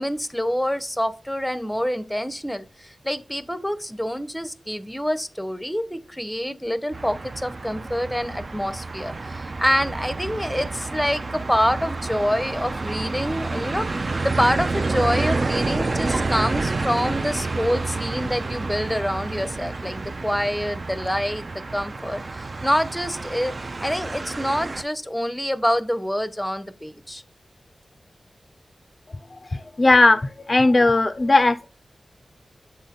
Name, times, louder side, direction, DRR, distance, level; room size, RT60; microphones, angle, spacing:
voice 1, 0.0-13.8 14.2-27.2, equal, 5° left, 0.6 m, -26 dB
sound 1, 6.9-24.8, right 3 dB, 50° right, 0.4 m, -29 dB
voice 2, 29.5-30.2 30.5-31.7, left 2 dB, 45° left, 0.4 m, -17 dB
7.0 x 3.8 x 4.2 m
cardioid pair, 50°, 0 cm